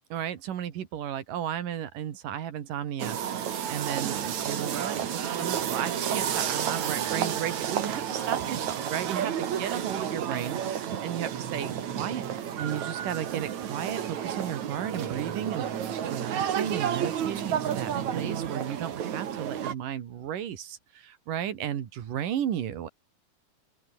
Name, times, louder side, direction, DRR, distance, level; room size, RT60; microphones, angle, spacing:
voice 1, 0.1-3.2 3.5-12.3 12.6-22.9, right 10 dB, 80° right, 3.7 m, -34 dB
sound 1, 3.0-19.7, right 9 dB, 60° right, 3.2 m, -31 dB
open air
omnidirectional pair, 3.8 m